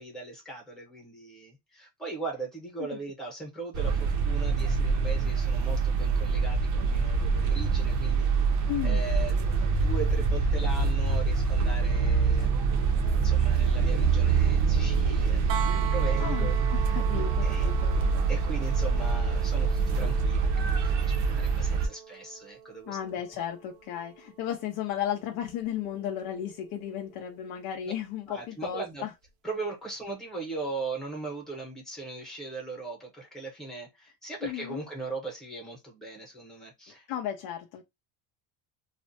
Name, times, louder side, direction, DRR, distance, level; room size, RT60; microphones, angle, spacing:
voice 1, 0.0-8.3 8.8-9.3 9.7-12.8 13.1-17.0 17.4-17.7 18.3-23.2 28.3-29.1 29.4-37.1, right 3 dB, ahead, 0.8 m, -39 dB
sound 1, 3.7-21.9, right 5 dB, 45° right, 0.5 m, -25 dB
voice 2, 8.7-9.1 10.5-10.7 16.2-18.0 22.9-29.1 34.4-34.8 37.1-37.8, left 10 dB, 60° left, 0.5 m, -34 dB
sound 2, 15.5-27.3 29.2-29.3, right 8 dB, 85° right, 0.7 m, -42 dB
2.4 x 2.1 x 2.6 m
cardioid pair, 165°, 41 cm